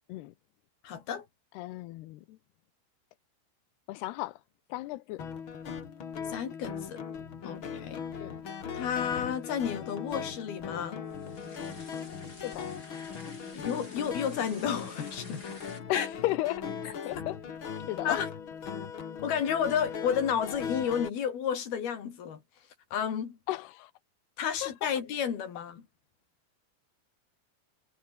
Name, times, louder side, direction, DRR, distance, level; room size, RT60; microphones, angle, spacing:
voice 1, 0.8-1.3 6.3-7.0 7.4-8.0 8.7-11.0 13.5-15.5 15.9-16.1 18.0-18.3 19.2-22.4 22.9-23.4 24.4-25.8, left 8 dB, 70° left, 5.2 m, -31 dB
voice 2, 1.5-2.4 3.9-4.4 4.7-5.2 8.2-8.3 12.4-12.7 15.9-17.4 17.9-18.2 23.5-23.9 24.6-24.7, left 17 dB, 90° left, 3.0 m, -34 dB
sound 1, 5.2-21.1, left 7 dB, 40° left, 2.2 m, -39 dB
sound 2, 11.1-15.8, left 2 dB, 25° left, 5.8 m, -49 dB
Breathing, 13.2-15.7, right 6 dB, 70° right, 7.0 m, -56 dB
omnidirectional pair, 4.5 m